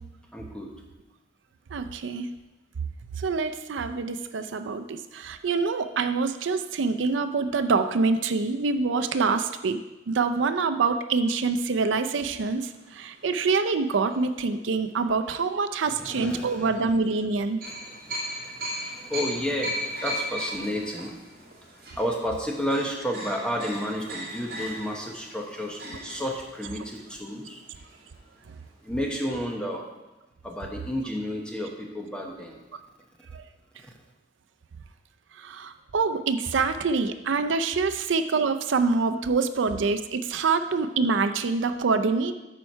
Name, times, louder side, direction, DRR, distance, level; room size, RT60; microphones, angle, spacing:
voice 1, 0.3-0.8 15.9-16.7 17.8-18.2 18.5-21.1 22.0-27.6 28.8-29.8 30.4-32.6, equal, 5° left, 0 dB, 0.9 m, -31 dB
voice 2, 1.7-2.3 3.2-17.6 33.3-33.4 35.4-42.3, right 4 dB, 80° right, 9 dB, 0.5 m, -26 dB
sound 1, 12.2-14.7 15.2-15.4 17.6-28.4 28.6-28.7 29.0-29.2, equal, 50° right, 1.8 m, -38 dB
8.9 x 4.6 x 5.4 m, 1.0 s
head